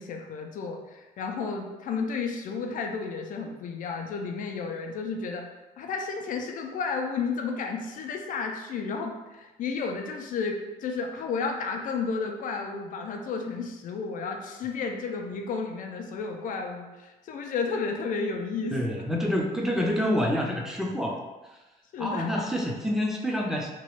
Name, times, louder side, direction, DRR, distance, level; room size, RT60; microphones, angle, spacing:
voice 1, 0.0-5.5 5.8-19.1 21.9-22.5, left 4 dB, 50° left, 3 dB, 0.4 m, -32 dB
voice 2, 18.7-21.2 22.0-23.7, left 1 dB, 5° right, -1 dB, 0.5 m, -27 dB
3.0 x 2.3 x 3.1 m, 1.1 s
cardioid pair, 110°, 17 cm